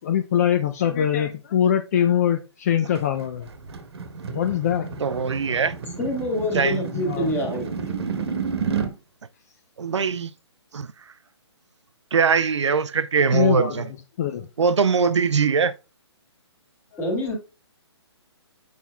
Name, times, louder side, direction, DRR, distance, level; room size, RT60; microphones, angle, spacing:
voice 1, 0.0-3.5 4.3-4.9 6.9-7.3 13.3-13.9 14.2-14.5, left 9 dB, 35° left, 0.5 m, -23 dB
sound 1, 2.9-8.9, right 6 dB, 65° right, 1.2 m, -31 dB
voice 2, 5.0-5.7 6.5-6.8 9.8-10.3 10.7-10.9 12.1-13.8 14.6-15.7, right 5 dB, 80° right, 0.5 m, -21 dB
voice 3, 6.0-7.7 17.0-17.4, left 1 dB, 15° left, 1.7 m, -26 dB
7.1 x 5.7 x 2.3 m
figure-of-eight pair, 140°, 15 cm